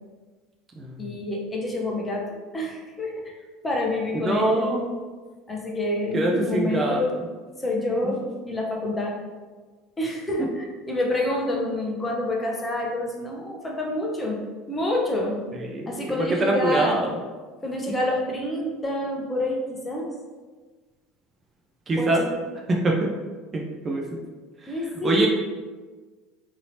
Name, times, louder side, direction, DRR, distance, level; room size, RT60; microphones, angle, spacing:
voice 1, 1.0-2.3 2.5-3.4 3.6-4.6 5.5-7.1 7.6-8.2 8.4-9.1 10.0-14.4 14.7-15.5 15.9-17.0 17.6-20.1 22.0-22.4 24.7-25.3, left 1 dB, 20° left, -1 dB, 0.8 m, -27 dB
voice 2, 4.2-4.9 6.1-7.0 15.7-17.1 21.9-22.2 22.7-23.1 23.5-24.0 25.0-25.3, right 2 dB, 30° right, 0 dB, 0.5 m, -23 dB
3.9 x 2.8 x 2.8 m, 1.4 s
figure-of-eight pair, 70°, 0 cm